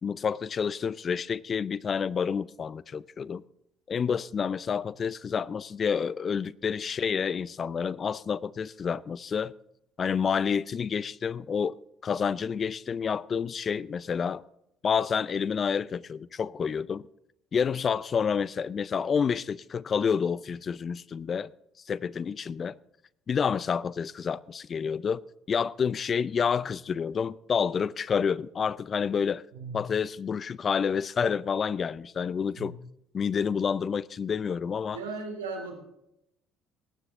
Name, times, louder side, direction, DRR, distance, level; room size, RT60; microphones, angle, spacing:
voice 1, 0.0-3.4 3.9-9.5 10.0-11.8 12.0-14.4 14.8-17.1 17.5-21.5 21.9-22.8 23.3-25.2 25.5-29.4 29.7-32.8 33.1-35.0, left 6 dB, 45° left, 0.5 m, -29 dB
voice 2, 34.9-35.7, right 4 dB, 90° right, 3.2 m, -36 dB
19.5 x 10.0 x 3.7 m
hypercardioid pair, 55°, 0 cm